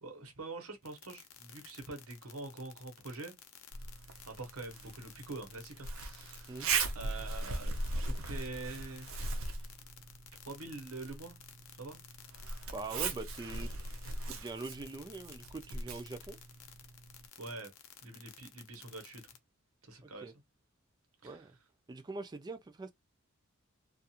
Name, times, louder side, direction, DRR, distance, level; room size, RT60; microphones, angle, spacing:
voice 1, 0.0-3.3 4.3-6.6 6.9-9.2 10.5-11.4 11.8-12.0 17.4-17.7 18.0-19.2 19.8-20.3 21.2-21.5, right 3 dB, 80° right, 1.0 m, -45 dB
sound 1, 0.8-19.4, left 10 dB, 65° left, 0.6 m, -54 dB
Zipper (clothing), 3.7-17.3, right 3 dB, 65° right, 0.6 m, -39 dB
voice 2, 12.7-13.7 14.3-16.4 20.0-20.3 21.2-21.5 21.9-22.9, right 3 dB, 20° right, 0.3 m, -43 dB
2.4 x 2.4 x 2.8 m
head